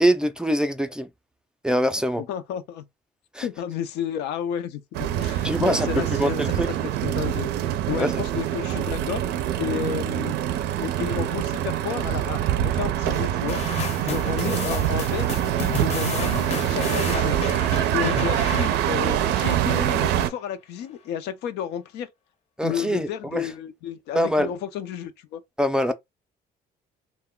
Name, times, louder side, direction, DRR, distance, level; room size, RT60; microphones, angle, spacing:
voice 1, 0.0-1.1 1.6-2.2 3.3-3.5 5.4-6.7 8.0-8.2 22.6-23.5 24.1-24.5 25.6-25.9, equal, 5° right, 0.3 m, -23 dB
voice 2, 2.2-2.9 3.4-6.6 6.8-7.5 7.9-9.2 9.6-10.4 10.8-13.6 14.0-15.3 15.7-17.5 17.9-22.1 22.6-25.4, left 9 dB, 85° left, 0.5 m, -32 dB
sound 1, 4.9-20.3, right 11 dB, 80° right, 0.4 m, -25 dB
sound 2, 13.5-20.0, left 6 dB, 40° left, 0.6 m, -33 dB
2.3 x 2.1 x 3.6 m
cardioid pair, 110°, 17 cm